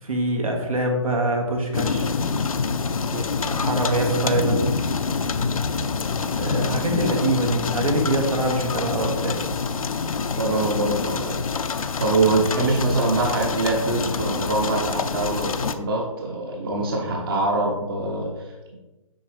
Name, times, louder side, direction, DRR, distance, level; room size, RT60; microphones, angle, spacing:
voice 1, 0.0-2.1 3.4-4.7 6.4-9.4, right 1 dB, 80° right, 2 dB, 1.8 m, -24 dB
sound 1, 1.7-15.7, left 5 dB, 80° left, 0.5 m, -26 dB
voice 2, 10.4-11.4 11.8-18.8, right 2 dB, 40° right, 0 dB, 1.1 m, -24 dB
7.7 x 5.0 x 3.2 m, 1.0 s
hypercardioid pair, 150°, 18 cm